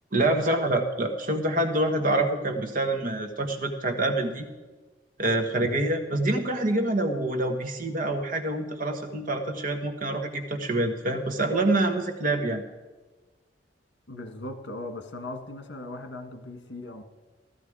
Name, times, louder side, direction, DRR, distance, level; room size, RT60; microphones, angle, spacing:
voice 1, 0.1-4.5 5.2-12.6, right 2 dB, 50° right, 5 dB, 1.5 m, -26 dB
voice 2, 14.1-17.0, left 2 dB, 80° left, 6 dB, 1.9 m, -38 dB
14.5 x 13.5 x 4.9 m, 1.2 s
head